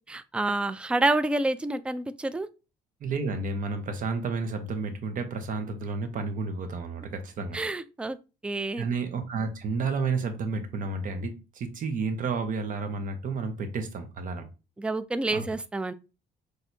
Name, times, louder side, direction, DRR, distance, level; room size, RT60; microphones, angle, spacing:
voice 1, 0.1-2.5 7.5-8.2 8.4-8.8 14.8-15.9, right 2 dB, 5° right, 0.3 m, -28 dB
voice 2, 3.0-7.6 8.8-14.4 15.3-15.5, right 4 dB, 50° right, 0.9 m, -31 dB
6.1 x 2.6 x 2.7 m
cardioid pair, 110°, 17 cm